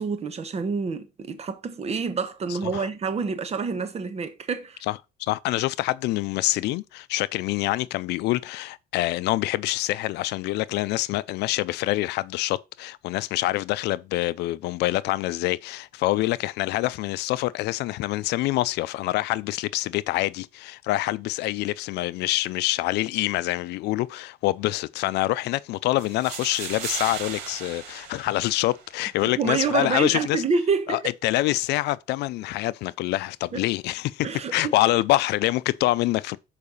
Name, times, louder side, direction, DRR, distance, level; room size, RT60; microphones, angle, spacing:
voice 1, 0.0-4.8 29.2-31.0 33.5-33.6 34.2-34.7, right 5 dB, 40° right, 1.3 m, -27 dB
voice 2, 4.9-30.4 30.9-36.4, left 17 dB, 80° left, 0.5 m, -26 dB
sound 1, 26.0-29.0, right 7 dB, 85° right, 2.2 m, -36 dB
6.7 x 4.8 x 5.4 m
cardioid pair, 110°, 17 cm